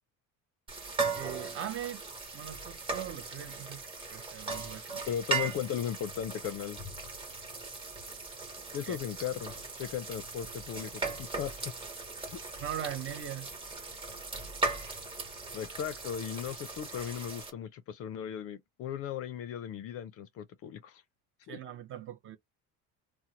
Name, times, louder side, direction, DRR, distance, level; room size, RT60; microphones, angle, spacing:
sound 1, 0.7-17.5, right 3 dB, 15° right, 1.0 m, -38 dB
voice 1, 1.2-2.0 2.3-3.9 4.1-5.0 8.9-9.0 12.6-13.5 21.5-22.4, right 10 dB, 35° right, 0.5 m, -40 dB
voice 2, 5.1-6.8 8.7-11.0 11.3-11.9 12.3-12.4 15.5-21.0 21.5-21.6, left 9 dB, 40° left, 0.4 m, -37 dB
2.9 x 2.0 x 3.7 m
cardioid pair, 165°, 38 cm